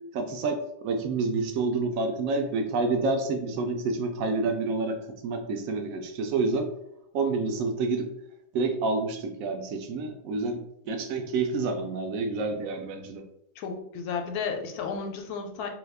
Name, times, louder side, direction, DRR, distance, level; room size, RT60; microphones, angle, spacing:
voice 1, 0.1-5.0 5.2-6.7 7.1-8.1 8.5-10.6 10.9-13.2, right 3 dB, 70° right, 5 dB, 0.9 m, -28 dB
voice 2, 13.6-15.7, left 5 dB, 85° left, 4 dB, 1.1 m, -33 dB
2.8 x 2.3 x 3.3 m, 0.78 s
omnidirectional pair, 1.6 m